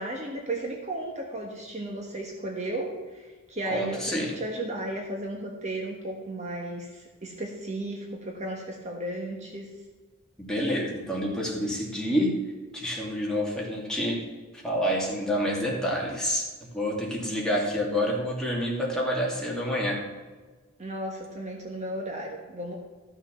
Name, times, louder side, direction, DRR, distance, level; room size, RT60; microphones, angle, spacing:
voice 1, 0.0-9.7 20.8-22.8, right 1 dB, 35° right, 0 dB, 1.4 m, -34 dB
voice 2, 3.7-4.4 10.4-12.4 12.7-14.3 14.6-16.5 16.7-20.0, equal, 5° left, -3 dB, 2.6 m, -28 dB
14.0 x 6.3 x 5.8 m, 1.3 s
head